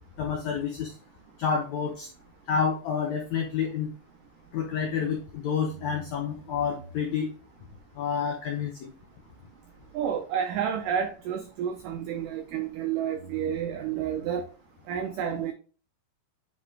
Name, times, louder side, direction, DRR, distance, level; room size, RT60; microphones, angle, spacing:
voice 1, 0.2-0.9 1.4-2.1 2.5-3.9 4.5-7.3 7.9-8.9, left 6 dB, 80° left, 1.6 m, -29 dB
sound 1, 1.0-5.2 5.6-12.7 13.1-14.4, right 2 dB, 35° right, 0.7 m, -53 dB
voice 2, 9.9-14.5 14.9-15.5, right 8 dB, 90° right, 1.8 m, -30 dB
9.5 x 3.9 x 3.3 m
omnidirectional pair, 4.5 m